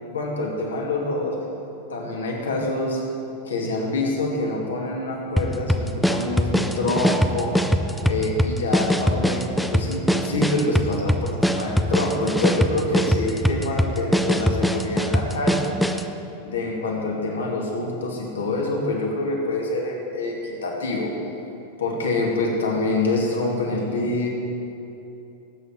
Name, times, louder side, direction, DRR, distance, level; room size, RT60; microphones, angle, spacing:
voice 1, 0.1-1.4 1.9-3.0 3.4-7.5 8.0-15.7 16.4-21.1 21.8-24.3, left 2 dB, 70° left, -1 dB, 2.5 m, -26 dB
sound 1, 5.4-16.1, equal, ahead, 0.6 m, -22 dB
19.0 x 8.6 x 4.5 m, 3.0 s
figure-of-eight pair, 90°, 0 cm